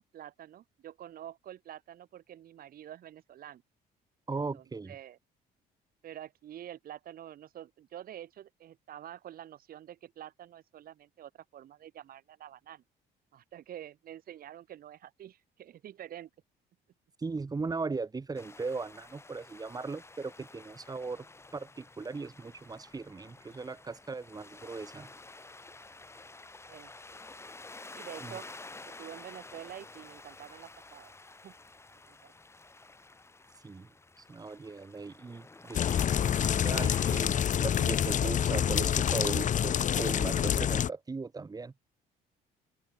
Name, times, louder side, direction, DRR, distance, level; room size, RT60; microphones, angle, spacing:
voice 1, 0.0-3.6 4.3-5.2 6.0-12.8 13.3-16.3 26.7-26.9 27.9-28.5 28.9-31.1 31.4-31.6 32.1-32.3, right 11 dB, 60° right, 7.5 m, -47 dB
voice 2, 4.3-5.0 17.2-21.3 21.5-25.1 28.2-28.4 33.6-33.9 34.2-36.0 36.3-41.7, right 4 dB, 20° right, 4.1 m, -38 dB
sound 1, 18.3-37.2, left 3 dB, 15° left, 4.4 m, -51 dB
sound 2, 35.7-40.9, left 9 dB, 50° left, 2.3 m, -27 dB
open air
cardioid pair, 110°, 17 cm